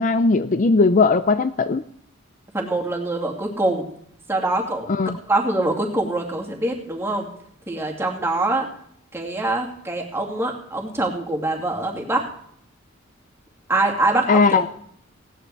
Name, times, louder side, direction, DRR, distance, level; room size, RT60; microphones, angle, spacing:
voice 1, 0.0-1.8 4.9-5.2 14.3-14.7, left 4 dB, 40° left, 11 dB, 0.5 m, -18 dB
voice 2, 2.5-3.9 4.3-4.9 5.3-7.3 7.7-8.7 9.1-12.2 13.7-14.7, right 2 dB, 10° right, -1 dB, 2.4 m, -24 dB
17.0 x 10.5 x 4.6 m, 0.67 s
head